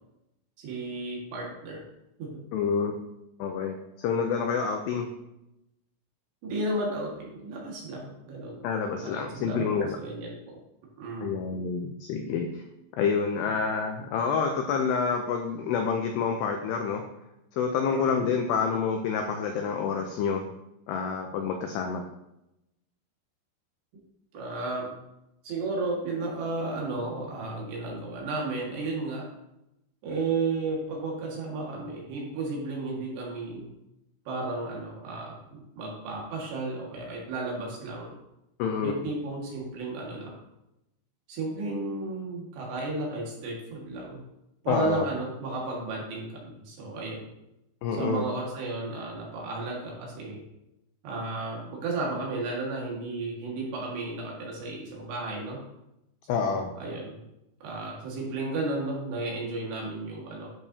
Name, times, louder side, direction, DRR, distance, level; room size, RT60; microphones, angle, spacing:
voice 1, 0.6-1.8 2.2-2.4 6.4-8.6 9.0-10.6 11.0-11.4 13.5-13.6 17.9-18.3 24.3-24.9 25.4-29.3 30.0-33.7 34.3-38.2 38.8-40.4 41.3-44.2 44.6-47.3 48.0-50.4 51.0-55.6 56.3-57.2 57.6-60.5, right 3 dB, 65° right, -3 dB, 3.7 m, -33 dB
voice 2, 2.5-2.9 3.4-5.1 8.6-10.0 11.2-12.6 13.0-17.0 17.5-20.4 20.9-22.0 38.6-38.9 44.7-45.1 47.8-48.3 56.3-56.7, left 6 dB, 85° left, 4 dB, 2.4 m, -28 dB
11.0 x 6.8 x 2.8 m, 0.88 s
omnidirectional pair, 5.6 m